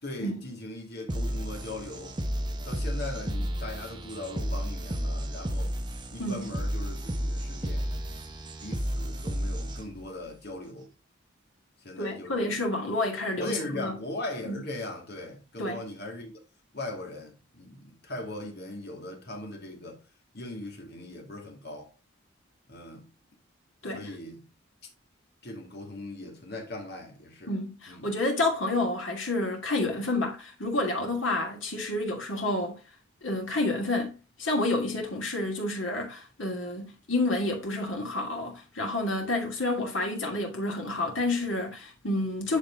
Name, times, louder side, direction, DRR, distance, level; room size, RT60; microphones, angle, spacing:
voice 1, 0.0-2.2 2.6-5.7 6.1-7.9 8.6-10.9 11.8-12.6 13.4-16.4 16.7-20.0 20.3-21.9 22.7-23.1 23.9-24.5 25.4-27.5 27.9-28.1, left 1 dB, 55° left, 2.4 m, -39 dB
sound 1, 1.1-10.1, equal, 25° right, 0.9 m, -32 dB
voice 2, 12.0-14.0 14.5-14.6 15.6-15.8 23.8-24.0 27.5-32.8 33.2-42.6, left 2 dB, 80° left, 2.7 m, -29 dB
10.5 x 3.8 x 3.9 m
head